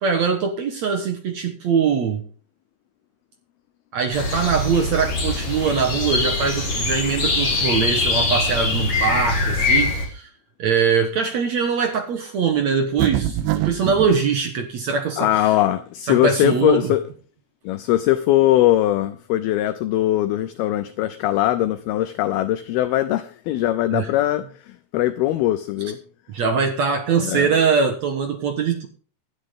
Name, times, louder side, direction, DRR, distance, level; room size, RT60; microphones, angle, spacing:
voice 1, 0.0-2.2 3.9-10.3 10.6-15.5 16.1-16.9 23.9-24.1 26.3-28.9, right 6 dB, 65° right, 6 dB, 1.8 m, -22 dB
sound 1, 4.1-10.0, left 3 dB, 35° left, 4.1 m, -22 dB
sound 2, 13.0-14.1, right 13 dB, 85° right, 3.3 m, -23 dB
voice 2, 15.2-17.0 17.6-26.0 27.2-27.5, left 14 dB, 75° left, 12 dB, 2.4 m, -21 dB
16.0 x 12.0 x 3.7 m, 0.40 s
omnidirectional pair, 5.0 m